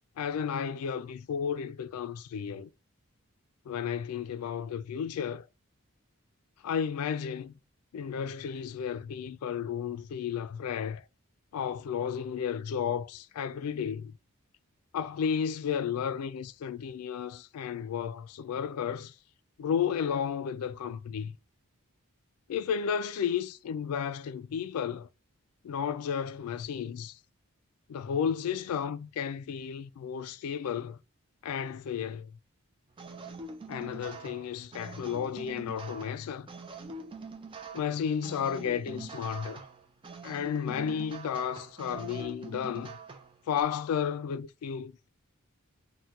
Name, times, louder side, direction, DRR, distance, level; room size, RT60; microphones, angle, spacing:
voice 1, 0.2-2.7 3.7-5.5 6.6-7.5 7.9-11.0 11.5-14.1 14.9-19.1 19.6-21.4 22.5-25.1 25.6-27.2 27.9-31.0 31.4-32.3 33.7-36.5 37.7-39.6 40.2-43.0 43.5-45.1, left 7 dB, 90° left, 0.3 m, -33 dB
sound 1, 33.0-43.6, right 4 dB, 25° right, 0.3 m, -44 dB
4.2 x 2.1 x 2.3 m
head